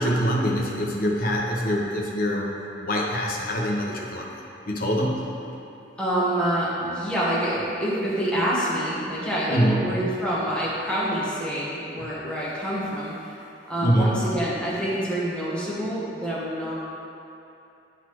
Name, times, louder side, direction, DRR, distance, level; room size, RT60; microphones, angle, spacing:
voice 1, 0.0-4.4 4.7-5.3 9.1-9.2 9.5-9.9 13.8-14.3, equal, 50° left, -2 dB, 0.9 m, -24 dB
voice 2, 6.0-13.1 13.7-16.7, right 1 dB, 5° left, -9 dB, 1.3 m, -26 dB
11.0 x 4.1 x 3.0 m, 2.8 s
head